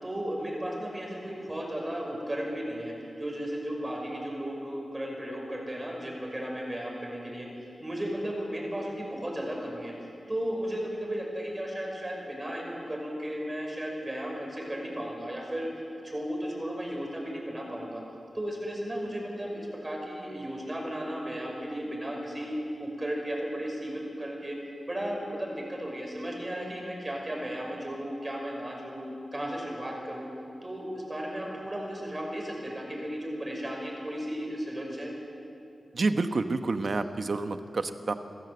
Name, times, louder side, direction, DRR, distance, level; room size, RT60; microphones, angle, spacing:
voice 1, 0.0-7.5 7.8-9.9 10.3-15.7 16.0-18.0 18.3-22.5 22.8-24.6 24.9-29.1 29.3-30.3 30.6-35.1, equal, 25° right, 0 dB, 5.9 m, -35 dB
voice 2, 35.9-38.1, right 3 dB, 60° right, 9 dB, 1.1 m, -28 dB
27.0 x 15.0 x 7.9 m, 2.8 s
wide cardioid pair, 80°, 0 cm